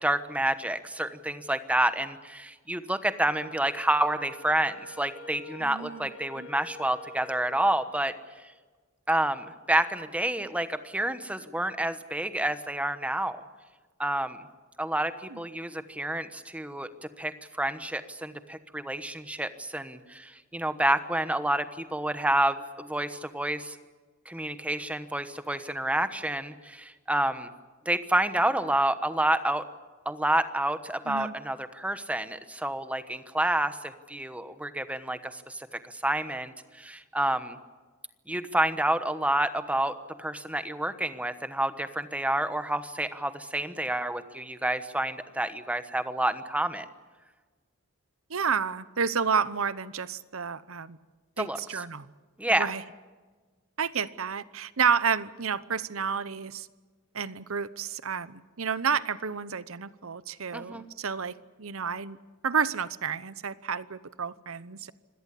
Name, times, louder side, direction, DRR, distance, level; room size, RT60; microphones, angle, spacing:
voice 1, 0.0-8.1 9.1-13.4 14.0-14.4 14.8-16.9 17.2-23.8 24.3-27.5 27.8-29.6 30.0-37.6 38.3-46.8 51.4-51.8 52.4-52.7 60.5-60.9, right 1 dB, 5° right, 11 dB, 1.1 m, -29 dB
Wind instrument woodwind instrument, 3.4-8.0, left 1 dB, 60° left, 7.4 m, -48 dB
voice 2, 5.6-6.1 6.4-6.5 15.3-15.4 31.1-31.3 48.3-51.0 51.4-52.1 52.6-52.8 53.8-56.7 57.1-62.2 62.4-64.9, right 6 dB, 65° right, 16 dB, 0.9 m, -30 dB
26.0 x 17.5 x 8.5 m, 1.4 s
head